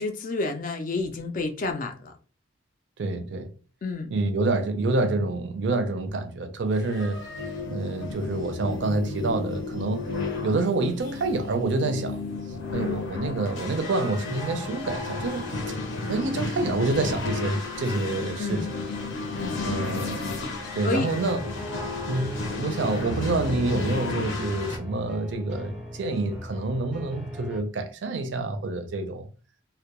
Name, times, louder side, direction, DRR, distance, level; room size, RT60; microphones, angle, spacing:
voice 1, 0.0-2.1 3.8-4.1 18.4-18.7 19.4-19.6 20.8-21.1, left 3 dB, 40° left, 0.3 m, -30 dB
voice 2, 3.0-3.5 4.1-7.2 7.7-10.1 10.4-12.2 12.7-15.5 16.1-18.7 19.6-20.2 20.7-21.4 22.1-29.3, right 2 dB, 60° right, 0.4 m, -27 dB
sound 1, 6.8-24.8, left 3 dB, 75° left, 0.6 m, -33 dB
sound 2, 21.1-27.6, equal, 5° right, 0.5 m, -38 dB
2.2 x 2.1 x 2.8 m
head